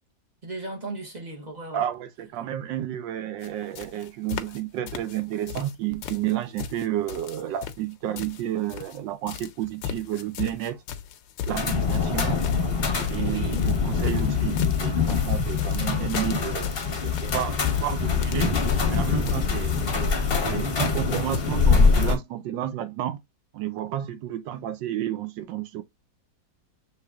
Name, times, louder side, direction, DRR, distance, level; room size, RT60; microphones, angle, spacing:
voice 1, 0.4-1.8 12.3-12.4 13.2-13.7, right 2 dB, 40° right, 0.6 m, -36 dB
voice 2, 1.7-10.8 11.5-12.4 13.1-18.6 18.9-23.2 23.5-25.8, right 12 dB, 75° right, 1.2 m, -31 dB
sound 1, 3.4-3.5 3.8-4.6 4.9-5.8 6.0-9.0 9.3-21.4, left 9 dB, 75° left, 1.3 m, -37 dB
sound 2, 11.5-22.2, left 5 dB, 40° left, 0.8 m, -24 dB
6.5 x 3.3 x 2.3 m
omnidirectional pair, 2.1 m